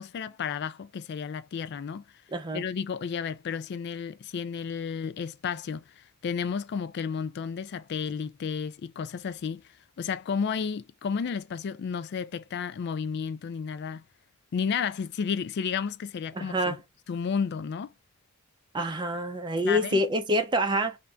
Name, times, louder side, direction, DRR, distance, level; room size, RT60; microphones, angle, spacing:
voice 1, 0.0-2.0 2.5-9.6 10.0-14.0 14.5-16.8 17.1-17.9 19.6-20.0, left 6 dB, 55° left, 0.3 m, -32 dB
voice 2, 2.3-2.6 16.4-16.8 18.7-21.0, equal, 20° right, 0.5 m, -27 dB
3.5 x 2.6 x 3.3 m
head